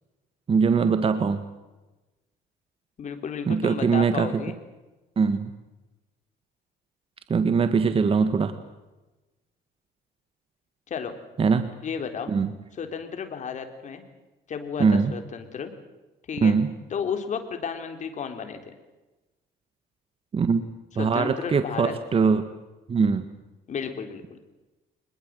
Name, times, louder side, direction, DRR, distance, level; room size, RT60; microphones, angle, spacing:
voice 1, 0.5-1.4 3.5-4.4 5.2-5.5 7.3-8.5 11.4-11.7 12.3-12.5 14.8-15.1 16.4-16.7 20.3-20.6 21.0-22.5 22.9-23.3, right 5 dB, 35° right, 10 dB, 1.6 m, -22 dB
voice 2, 3.0-4.6 10.9-11.1 11.8-12.3 12.8-14.0 14.5-15.7 16.3-16.6 16.9-18.6 21.0-21.9 23.7-24.4, left 6 dB, 45° left, 6 dB, 4.1 m, -33 dB
25.0 x 21.0 x 7.9 m, 1.1 s
cardioid pair, 110°, 17 cm